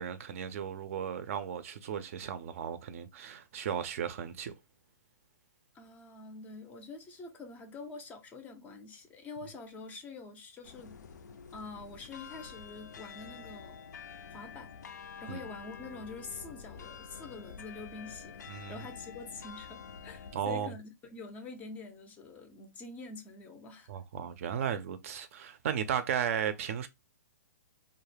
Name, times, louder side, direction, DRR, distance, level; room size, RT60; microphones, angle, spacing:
voice 1, 0.0-4.5 15.3-15.4 18.5-18.7 20.3-20.7 23.9-26.9, right 8 dB, 50° right, 0.4 m, -35 dB
voice 2, 5.7-11.0 11.5-13.8 14.3-14.7 15.2-18.4 18.7-23.9, left 3 dB, 15° left, 0.4 m, -46 dB
sound 1, 10.6-20.4, left 6 dB, 85° left, 0.4 m, -48 dB
2.3 x 2.0 x 3.2 m
hypercardioid pair, 140°, 9 cm